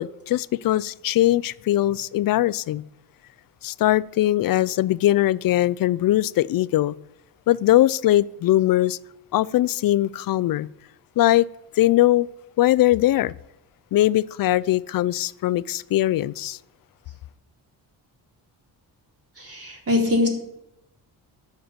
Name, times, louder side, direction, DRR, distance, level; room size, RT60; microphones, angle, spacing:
voice 1, 0.0-2.8 3.6-6.9 7.5-9.0 9.3-10.7 11.2-11.5 11.8-12.3 12.6-13.3 13.9-16.6, left 14 dB, 60° left, 0.5 m, -20 dB
voice 2, 19.4-20.3, left 2 dB, 35° right, 3.8 m, -22 dB
10.5 x 6.7 x 9.0 m
cardioid pair, 115°, 39 cm